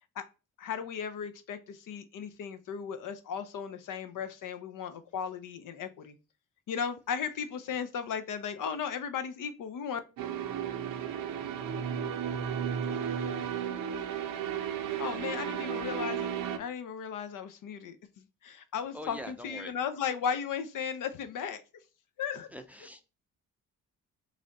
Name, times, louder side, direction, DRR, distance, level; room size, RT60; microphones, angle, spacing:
voice 1, 0.6-6.2 6.7-10.0 15.0-18.0 18.4-21.6 22.2-22.5, left 7 dB, 60° left, 0.6 m, -36 dB
sound 1, 10.2-16.6, right 8 dB, 65° right, 0.7 m, -34 dB
voice 2, 18.9-19.8 22.5-23.0, equal, 5° right, 0.6 m, -44 dB
3.2 x 2.6 x 4.0 m
hypercardioid pair, 55°, 37 cm